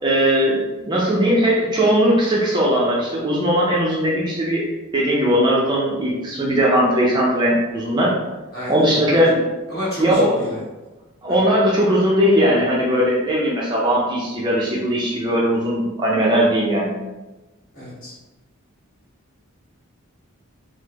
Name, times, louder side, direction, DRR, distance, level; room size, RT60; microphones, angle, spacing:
voice 1, 0.0-4.7 4.9-8.1 8.7-9.5 10.0-10.3 11.2-16.9, equal, 20° right, -5 dB, 0.5 m, -19 dB
voice 2, 8.5-9.2 9.7-10.6 11.3-11.4 17.7-18.1, equal, 45° left, -8 dB, 1.3 m, -30 dB
3.5 x 2.0 x 3.0 m, 1.1 s
head